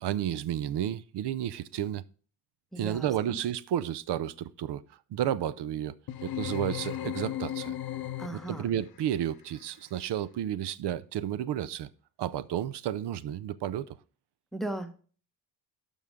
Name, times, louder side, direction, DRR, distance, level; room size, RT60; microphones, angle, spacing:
voice 1, 0.0-2.0 2.7-4.8 5.1-5.9 6.2-7.8 8.5-11.9 12.2-14.0, right 11 dB, 85° right, 0.6 m, -32 dB
voice 2, 2.7-3.4 8.2-8.7 14.5-14.9, right 1 dB, ahead, 0.9 m, -37 dB
sound 1, 6.1-8.7, left 12 dB, 65° left, 0.8 m, -35 dB
12.0 x 5.5 x 3.6 m
wide cardioid pair, 165°, 40 cm